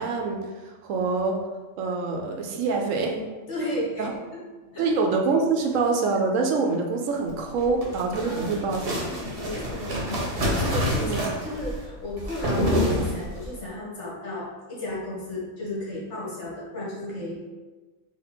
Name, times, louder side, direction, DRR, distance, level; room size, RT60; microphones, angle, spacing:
voice 1, 0.0-1.5 1.8-3.1 4.0-4.1 4.8-9.1 11.0-11.2, right 4 dB, 75° right, 2 dB, 1.0 m, -25 dB
voice 2, 2.5-3.2 3.5-4.9 8.2-8.7 9.0-17.4, left 1 dB, 60° left, -6 dB, 1.8 m, -34 dB
sound 1, 7.5-13.5, equal, 50° right, 1.1 m, -27 dB
4.0 x 2.9 x 4.3 m, 1.3 s
omnidirectional pair, 1.4 m